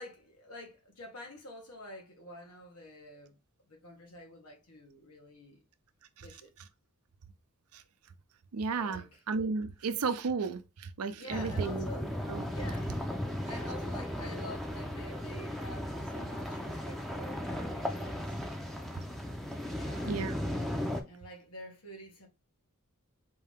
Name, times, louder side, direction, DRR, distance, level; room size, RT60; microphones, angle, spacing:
voice 1, 0.0-3.4 3.7-5.6 6.2-6.5 8.8-9.2 11.1-12.2 12.5-12.9 13.3-18.4 19.8-20.4 21.1-22.3, left 1 dB, 90° left, 1.6 m, -48 dB
voice 2, 8.5-10.6 11.0-11.9 12.3-12.4 20.0-20.3, right 4 dB, 85° right, 0.5 m, -33 dB
sound 1, 11.3-21.0, left 1 dB, ahead, 0.5 m, -36 dB
4.5 x 2.8 x 3.5 m
head